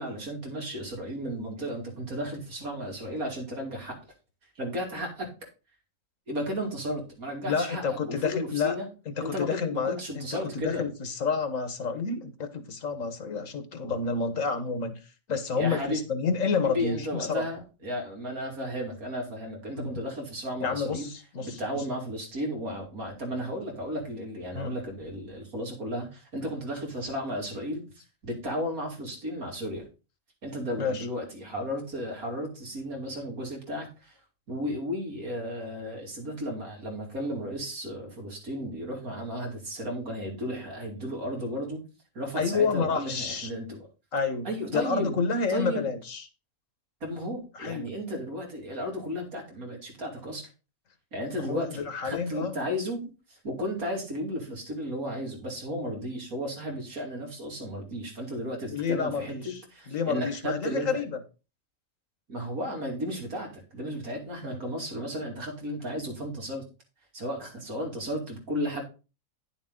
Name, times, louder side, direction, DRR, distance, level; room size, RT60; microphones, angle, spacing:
voice 1, 0.0-4.0 4.5-5.3 6.3-8.9 9.2-10.9 15.6-16.0 16.6-21.1 21.4-27.8 28.2-29.9 30.4-34.2 34.5-41.8 42.1-43.9 44.4-45.2 45.5-45.9 47.0-50.5 51.1-53.0 53.3-61.0 62.3-66.7 67.1-68.8, equal, 90° right, 3.2 m, -34 dB
voice 2, 7.5-8.8 9.1-15.0 15.3-17.4 19.8-19.9 20.6-21.8 24.5-24.7 30.8-31.1 42.4-43.5 44.1-44.5 44.7-46.2 47.5-47.9 51.4-52.6 58.7-59.6 59.9-61.2 64.4-64.6, left 5 dB, 70° left, 1.6 m, -29 dB
10.5 x 6.8 x 3.8 m
omnidirectional pair, 1.5 m